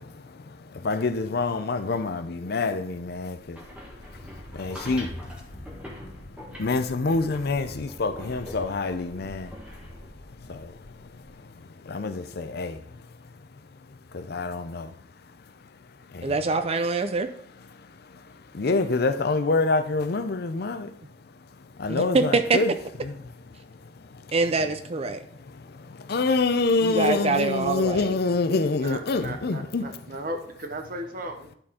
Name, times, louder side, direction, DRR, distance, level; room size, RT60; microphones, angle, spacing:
voice 1, 0.0-3.6 4.5-5.3 6.6-9.6 10.4-11.4 11.8-12.8 14.1-14.9 16.1-16.3 18.1-18.2 18.5-20.9 21.8-22.7 23.8-24.2 25.5-29.9, left 3 dB, 60° left, 0.6 m, -27 dB
sound 1, 3.4-11.3, left 1 dB, 5° right, 1.5 m, -42 dB
voice 2, 16.2-17.3 21.9-22.6 24.3-25.2 26.8-28.1, right 3 dB, 35° right, 0.5 m, -24 dB
voice 3, 28.8-31.6, right 1 dB, 50° right, 1.1 m, -36 dB
11.5 x 4.2 x 3.7 m
head